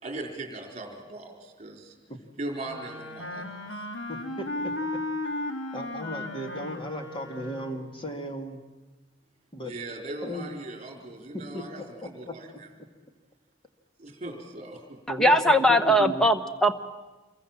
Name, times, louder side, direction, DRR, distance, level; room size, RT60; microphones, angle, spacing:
voice 1, 0.0-2.0 2.4-3.9 9.6-12.7 14.0-15.0, right 2 dB, 30° right, 3 dB, 4.1 m, -39 dB
Wind instrument woodwind instrument, 2.6-8.0, left 2 dB, 60° left, 2.2 m, -35 dB
voice 2, 4.1-4.7 5.2-5.4 5.7-8.6 9.5-9.7 10.2-10.5 11.3-11.6 12.3-12.4 15.1-16.3, equal, 25° left, 5 dB, 2.2 m, -36 dB
voice 3, 15.2-16.8, equal, 5° left, 7 dB, 1.0 m, -20 dB
27.5 x 23.0 x 7.4 m, 1.2 s
head